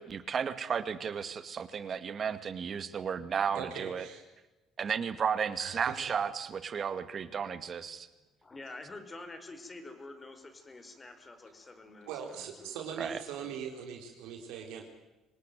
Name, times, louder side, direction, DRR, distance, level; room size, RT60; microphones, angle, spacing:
voice 1, 0.0-4.0 4.8-8.1 13.0-13.2, right 7 dB, 45° right, 12 dB, 2.2 m, -33 dB
voice 2, 3.5-4.2 5.6-5.9 12.0-14.9, right 7 dB, 75° right, 3 dB, 4.2 m, -41 dB
voice 3, 8.4-13.5, left 2 dB, 25° left, 8 dB, 4.6 m, -48 dB
25.5 x 19.0 x 9.3 m, 1.1 s
supercardioid pair, 70°, 0 cm